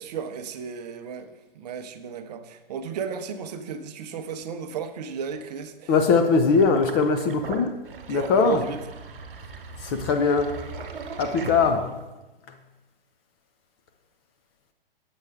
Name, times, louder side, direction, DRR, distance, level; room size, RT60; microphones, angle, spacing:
voice 1, 0.0-5.9 8.1-8.8, right 7 dB, 45° right, 8 dB, 0.7 m, -33 dB
voice 2, 5.9-7.7 8.1-8.6 9.8-10.6 11.2-11.9, left 5 dB, 25° left, 6 dB, 0.5 m, -21 dB
Sink (filling or washing), 6.6-12.2, right 4 dB, 60° right, 1.3 m, -39 dB
8.3 x 7.0 x 3.5 m, 1.1 s
figure-of-eight pair, 120°, 30 cm